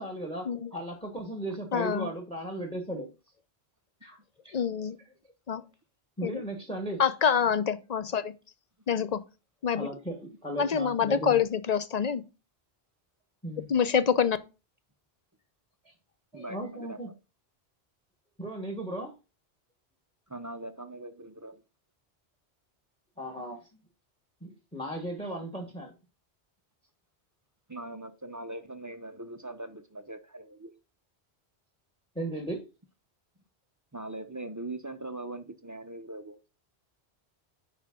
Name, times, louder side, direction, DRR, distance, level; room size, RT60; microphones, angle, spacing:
voice 1, 0.0-0.5 0.7-3.1 4.0-4.2 4.4-4.6 6.2-7.0 9.7-11.4 13.4-13.7 15.8-15.9 16.3-17.1 18.4-19.1 23.2-23.6 24.4-25.9 32.1-32.6, right 1 dB, 5° left, 1.2 m, -36 dB
voice 2, 1.7-2.1 4.5-5.0 5.5-5.6 6.2-6.4 7.0-8.3 8.9-9.2 9.6-9.9 10.6-12.2 13.7-14.4, left 7 dB, 50° left, 0.6 m, -26 dB
voice 3, 16.3-17.1 20.3-21.6 25.6-25.8 27.7-30.7 33.9-36.4, right 2 dB, 25° right, 0.4 m, -41 dB
9.0 x 5.0 x 3.6 m
omnidirectional pair, 1.1 m